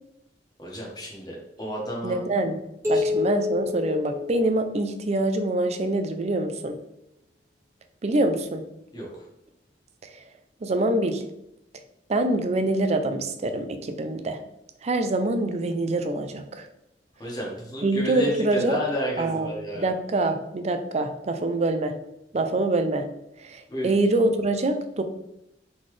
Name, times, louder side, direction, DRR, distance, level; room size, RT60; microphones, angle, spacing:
voice 1, 0.6-2.2 2.9-3.2 8.9-9.1 17.2-19.9 23.7-24.0, equal, 25° left, -4 dB, 1.3 m, -31 dB
voice 2, 2.0-2.6 2.9-6.8 8.0-8.6 10.6-11.2 12.1-14.4 14.8-16.7 17.8-18.8 19.2-19.5 19.8-21.9 22.3-23.1 23.4-25.0, right 2 dB, 40° right, 8 dB, 0.4 m, -25 dB
sound 1, 2.8-5.3, left 4 dB, 15° right, 1.6 m, -28 dB
4.0 x 3.9 x 3.2 m, 0.83 s
head